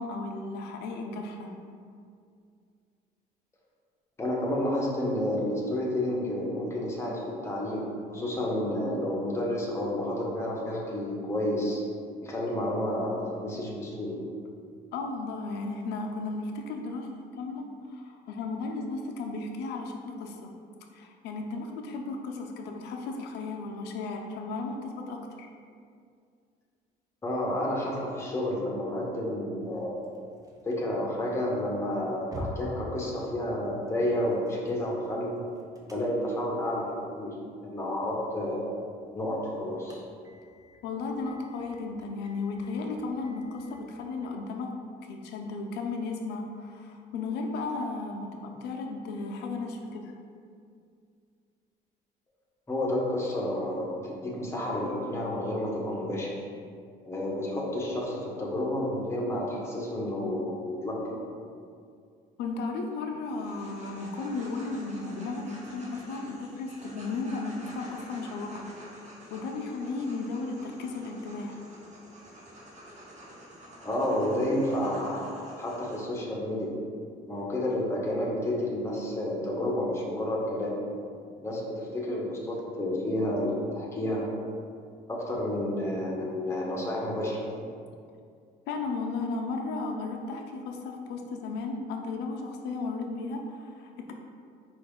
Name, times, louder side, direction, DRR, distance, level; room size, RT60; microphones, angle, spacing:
voice 1, 0.0-1.5 14.9-17.1 17.4-20.5 20.9-25.5 40.8-44.7 45.1-50.1 62.4-68.7 69.0-71.7 88.7-94.1, left 3 dB, 80° left, 2 dB, 0.5 m, -35 dB
voice 2, 4.2-11.8 12.2-14.2 27.2-30.0 30.6-35.3 35.9-38.7 39.1-40.0 52.7-56.3 57.1-61.2 73.8-75.3 75.6-76.8 77.3-80.8 81.4-84.3 85.1-87.5, left 1 dB, 15° left, -4 dB, 0.9 m, -30 dB
sound 1, 29.6-44.3, equal, 20° right, 0.6 m, -49 dB
sound 2, 63.2-76.0, equal, 45° right, 1.1 m, -48 dB
4.8 x 2.6 x 3.6 m, 2.3 s
cardioid pair, 110°, 17 cm